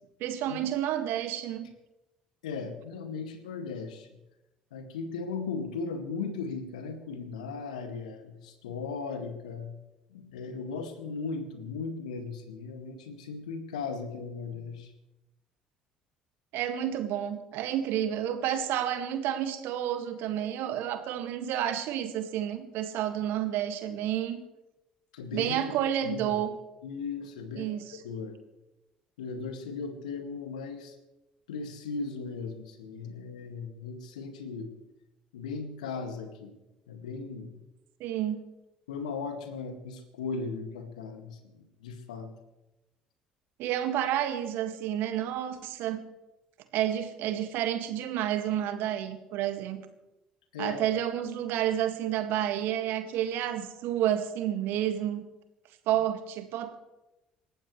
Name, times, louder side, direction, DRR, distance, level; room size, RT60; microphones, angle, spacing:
voice 1, 0.2-1.6 16.5-24.4 25.3-26.5 27.6-27.9 38.0-38.4 43.6-46.0 46.7-49.8 50.6-55.2 55.9-56.8, right 11 dB, 60° right, 8 dB, 1.9 m, -30 dB
voice 2, 2.4-4.2 4.7-9.8 10.1-14.9 25.1-25.5 26.0-26.4 26.8-28.4 29.2-31.0 31.5-34.7 35.3-36.5 36.9-37.5 38.9-42.3 50.5-50.8, left 4 dB, 80° left, 6 dB, 2.1 m, -37 dB
27.5 x 14.5 x 3.3 m, 0.97 s
figure-of-eight pair, 55°, 4 cm